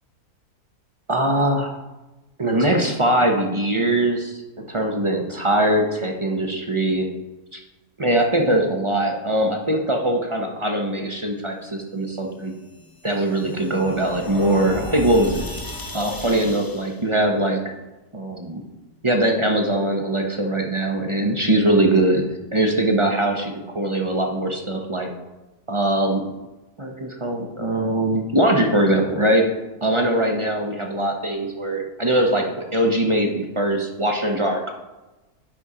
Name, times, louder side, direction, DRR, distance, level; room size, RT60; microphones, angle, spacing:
voice 1, 1.1-1.7 2.4-7.1 7.5-7.6 8.0-12.5 13.0-15.5 15.9-17.7 18.1-18.6 19.0-22.2 22.5-25.1 25.7-26.2 26.8-29.5 29.8-34.7, right 1 dB, 30° right, 2 dB, 0.6 m, -21 dB
sound 1, 12.5-17.0, left 1 dB, 35° left, 0.3 m, -35 dB
10.5 x 4.1 x 4.9 m, 1.1 s
omnidirectional pair, 1.6 m